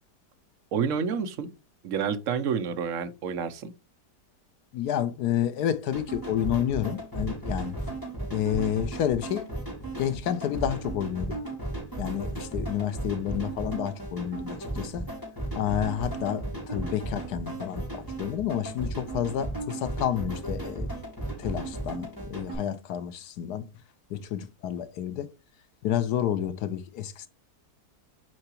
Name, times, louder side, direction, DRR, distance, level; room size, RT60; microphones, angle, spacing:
voice 1, 0.7-1.5 1.8-3.7, right 6 dB, 60° right, 1.1 m, -29 dB
voice 2, 4.7-7.8 8.3-9.5 10.0-11.4 12.0-15.1 15.5-20.9 21.4-23.6 24.1-25.3 25.8-27.3, left 10 dB, 90° left, 1.3 m, -30 dB
sound 1, 5.9-22.6, right 2 dB, 15° left, 3.3 m, -35 dB
7.7 x 4.6 x 2.9 m
omnidirectional pair, 1.6 m